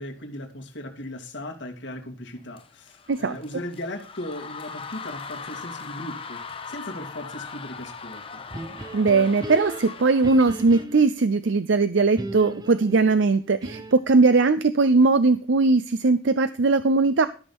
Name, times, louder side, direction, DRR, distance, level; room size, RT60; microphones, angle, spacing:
voice 1, 0.0-8.4, left 1 dB, 70° left, 4 dB, 2.2 m, -37 dB
sound 1, 2.5-10.8, left 5 dB, 30° left, 0.9 m, -40 dB
sound 2, 8.5-11.3 12.2-14.1, right 1 dB, 20° right, 0.7 m, -36 dB
voice 2, 8.9-17.3, right 3 dB, 75° right, 12 dB, 0.6 m, -20 dB
13.0 x 6.2 x 5.4 m, 0.38 s
head